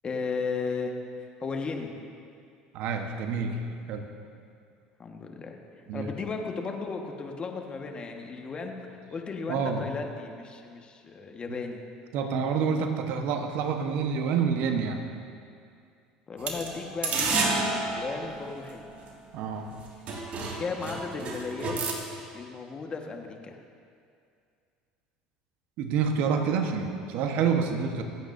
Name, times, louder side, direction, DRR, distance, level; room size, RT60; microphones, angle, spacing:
voice 1, 0.0-0.9 1.4-1.9 5.0-5.6 5.9-11.8 16.3-17.4 18.0-18.9 20.6-21.8 22.3-23.6, left 4 dB, 35° left, 3 dB, 1.5 m, -35 dB
voice 2, 2.7-3.6 3.9-4.1 5.9-6.1 9.5-9.9 12.1-15.0 19.3-19.7 25.8-28.0, right 6 dB, 65° right, 4 dB, 1.2 m, -27 dB
sound 1, 16.4-19.1 19.7-19.8 20.1-21.9, right 3 dB, 50° right, 2.2 m, -30 dB
25.5 x 8.7 x 2.7 m, 2.4 s
supercardioid pair, 85°, 3 cm